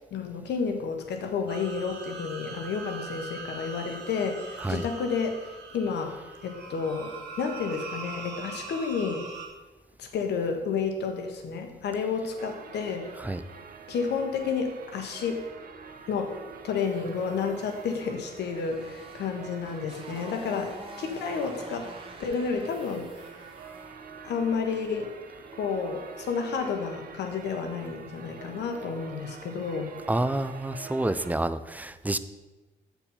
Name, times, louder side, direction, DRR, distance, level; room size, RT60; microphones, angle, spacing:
voice 1, 0.1-6.1 6.4-7.1 7.4-9.3 10.0-13.1 13.9-15.4 16.1-16.3 16.6-20.7 21.0-21.9 22.2-23.5 24.2-25.1 25.6-29.9, left 5 dB, 75° left, 4 dB, 1.1 m, -31 dB
sound 1, 1.5-9.5, right 4 dB, 75° right, 1.3 m, -41 dB
sound 2, 12.4-31.4, right 6 dB, 55° right, 0.8 m, -46 dB
Motorcycle, 18.0-24.1, right 2 dB, 30° right, 1.3 m, -48 dB
voice 2, 30.1-32.2, right 1 dB, 10° right, 13 dB, 0.4 m, -28 dB
7.0 x 4.6 x 5.5 m, 1.1 s
cardioid pair, 80°, 18 cm